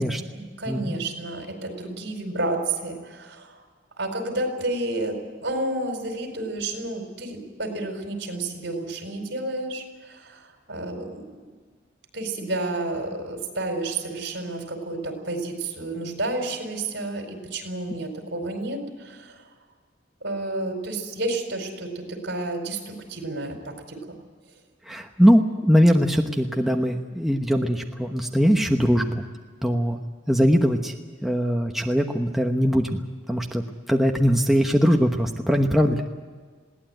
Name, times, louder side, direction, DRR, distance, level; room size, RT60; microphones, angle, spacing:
voice 1, 0.3-3.6 4.0-11.3 12.1-19.5 20.2-24.2, right 2 dB, 65° right, 4 dB, 4.6 m, -31 dB
voice 2, 24.9-29.2 29.6-30.0 30.3-30.9 31.2-33.0 33.3-33.6 33.9-36.1, equal, ahead, 2 dB, 1.0 m, -21 dB
21.5 x 17.5 x 9.1 m, 1.5 s
head